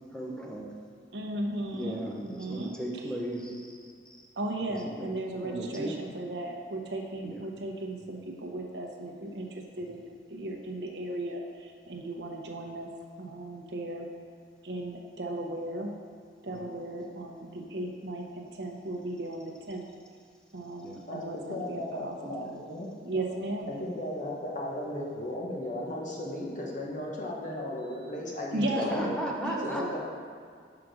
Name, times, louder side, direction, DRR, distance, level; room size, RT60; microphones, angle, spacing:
voice 1, 0.1-0.7 1.7-3.7 4.1-4.2 4.8-5.1 5.4-6.0 7.2-7.4 16.5-16.6 20.8-21.0 28.7-30.0, right 1 dB, 5° left, -2 dB, 0.8 m, -36 dB
voice 2, 1.1-2.7 4.4-12.9 13.2-14.1 14.6-15.9 16.4-19.9 20.5-22.6 23.0-23.8 28.5-30.0, right 1 dB, 75° right, 1 dB, 0.8 m, -36 dB
voice 3, 21.5-22.9 23.7-29.1 29.6-30.0, left 1 dB, 45° left, -2 dB, 1.1 m, -35 dB
5.0 x 4.9 x 6.1 m, 2.1 s
head